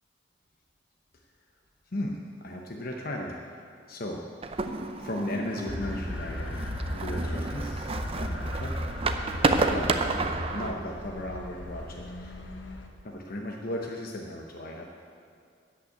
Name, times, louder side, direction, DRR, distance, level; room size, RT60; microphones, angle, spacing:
voice 1, 1.9-3.4 3.9-4.2 5.0-7.9 8.3-9.2 9.7-12.4 13.0-14.9, left 1 dB, 55° left, 0 dB, 0.9 m, -36 dB
sound 1, 4.4-10.7, right 3 dB, 30° right, 0.6 m, -30 dB
sound 2, 5.7-12.9, left 1 dB, 85° left, 1.1 m, -35 dB
13.0 x 5.7 x 8.9 m, 2.3 s
head